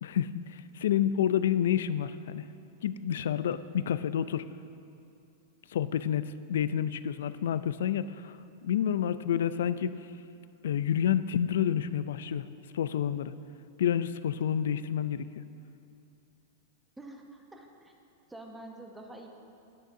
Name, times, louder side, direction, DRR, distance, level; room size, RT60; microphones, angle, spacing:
voice 1, 0.0-2.4 2.8-4.4 5.7-8.4 8.6-9.9 10.6-12.5 12.7-13.3 13.8-15.4, left 9 dB, 80° left, 14 dB, 0.3 m, -29 dB
voice 2, 17.0-17.9 18.3-19.3, right 2 dB, 5° right, 2 dB, 0.8 m, -47 dB
18.5 x 6.3 x 2.7 m, 2.6 s
supercardioid pair, 150°, 0 cm